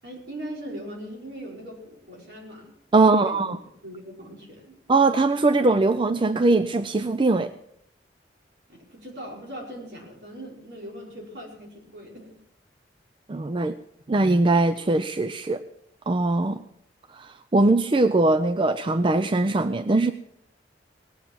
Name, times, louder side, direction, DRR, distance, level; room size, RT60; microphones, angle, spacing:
voice 1, 0.0-2.7 3.0-3.5 3.8-4.8 8.7-12.3, right 1 dB, 65° right, -2 dB, 5.2 m, -40 dB
voice 2, 2.9-3.6 4.9-7.5 13.3-13.8 14.1-15.6 16.1-16.6 17.1-20.1, right 2 dB, 30° right, 11 dB, 0.4 m, -21 dB
18.5 x 8.1 x 7.4 m, 0.75 s
head